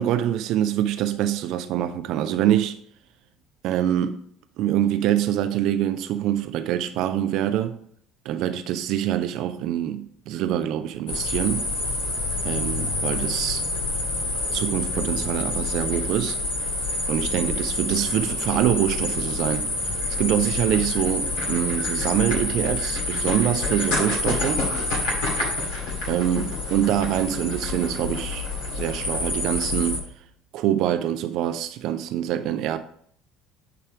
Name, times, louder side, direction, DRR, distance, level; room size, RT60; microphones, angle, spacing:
voice 1, 0.0-2.8 3.6-4.2 4.6-7.8 8.3-11.7 12.4-13.6 14.5-16.4 17.1-24.7 26.1-28.5 28.7-30.0 30.5-32.8, right 11 dB, 55° right, 0.4 m, -25 dB
sound 1, 11.1-30.0, left 2 dB, 60° left, 1.9 m, -27 dB
9.1 x 3.4 x 4.9 m
figure-of-eight pair, 60°, 0 cm